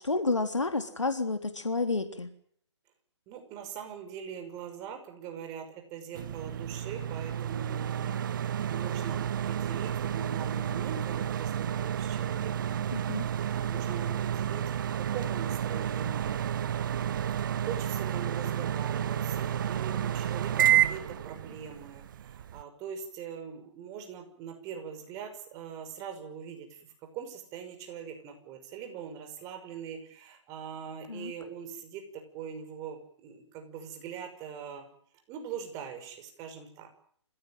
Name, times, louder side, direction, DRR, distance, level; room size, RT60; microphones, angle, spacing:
voice 1, 0.0-2.3 12.9-13.3 31.1-31.3, left 3 dB, 85° left, 7 dB, 3.5 m, -30 dB
voice 2, 3.3-17.2 17.6-26.8 27.1-32.0 32.3-34.9 35.3-36.9, right 7 dB, 20° right, 6 dB, 5.9 m, -42 dB
sound 1, 6.1-22.6, right 10 dB, 45° right, 1.0 m, -31 dB
28.5 x 17.0 x 9.2 m, 0.64 s
figure-of-eight pair, 140°, 15 cm